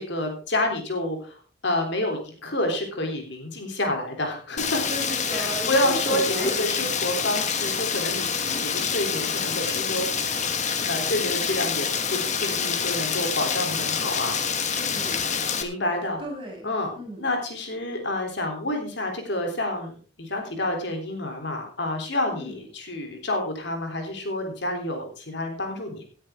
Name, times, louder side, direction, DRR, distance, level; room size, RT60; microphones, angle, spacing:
voice 1, 0.0-4.8 5.3-10.1 10.9-14.4 15.6-16.2 16.6-26.0, left 1 dB, 60° left, 4 dB, 3.4 m, -29 dB
Rain, 4.6-15.6, left 6 dB, 40° left, 1.5 m, -27 dB
voice 2, 4.9-6.6 14.7-15.2 16.2-16.7 17.0-17.3 22.3-22.6, right 1 dB, 25° right, -2 dB, 6.6 m, -34 dB
17.5 x 9.7 x 3.7 m, 0.39 s
head